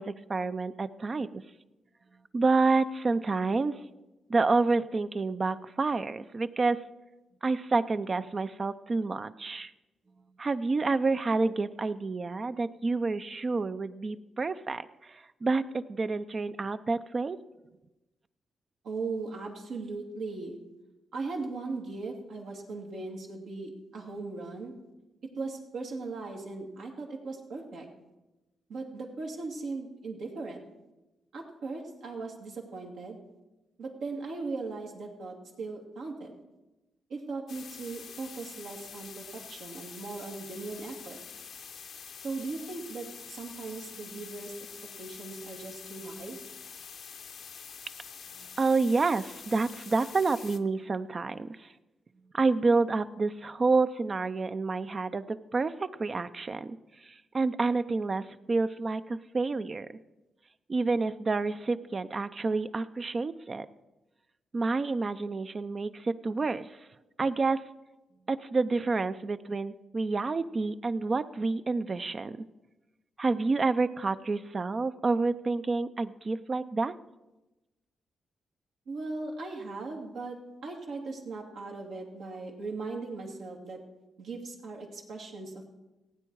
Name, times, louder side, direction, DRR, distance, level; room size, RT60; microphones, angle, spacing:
voice 1, 0.0-1.4 2.3-3.8 4.3-6.8 7.4-9.7 10.4-17.4 48.6-51.7 52.3-56.8 57.0-59.9 60.7-63.7 64.5-66.8 67.2-67.6 68.3-72.4 73.2-76.9, right 3 dB, 40° right, 11 dB, 0.6 m, -29 dB
voice 2, 18.8-20.6 21.1-24.7 25.2-27.9 28.7-30.6 31.3-33.2 33.8-36.3 37.1-41.2 42.2-44.5 45.0-46.4 78.9-83.8 84.2-85.7, right 3 dB, 80° right, -1 dB, 2.4 m, -38 dB
sound 1, 37.5-50.6, left 7 dB, 70° left, 0.8 m, -46 dB
16.0 x 9.0 x 4.8 m, 1.0 s
supercardioid pair, 55°, 0 cm